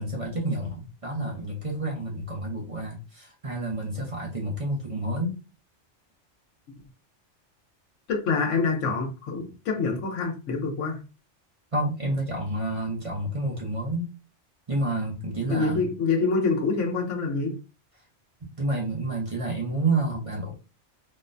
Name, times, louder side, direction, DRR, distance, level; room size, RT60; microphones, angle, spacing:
voice 1, 0.0-5.4 11.7-14.1 14.7-15.8 18.6-20.5, right 2 dB, 30° right, 0.8 m, -29 dB
voice 2, 8.1-11.0 15.5-17.6, left 4 dB, 85° left, 1.1 m, -26 dB
3.9 x 2.1 x 2.5 m
omnidirectional pair, 1.2 m